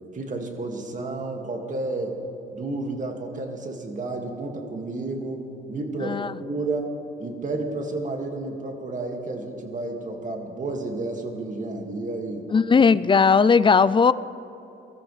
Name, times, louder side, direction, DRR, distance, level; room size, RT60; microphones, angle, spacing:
voice 1, 0.0-2.2 2.5-5.4 5.7-6.9 7.2-12.5, right 2 dB, 40° right, 3 dB, 2.1 m, -31 dB
voice 2, 6.0-6.4 12.5-14.1, left 5 dB, 25° left, 17 dB, 0.4 m, -17 dB
23.0 x 13.5 x 3.3 m, 3.0 s
cardioid pair, 90°, 20 cm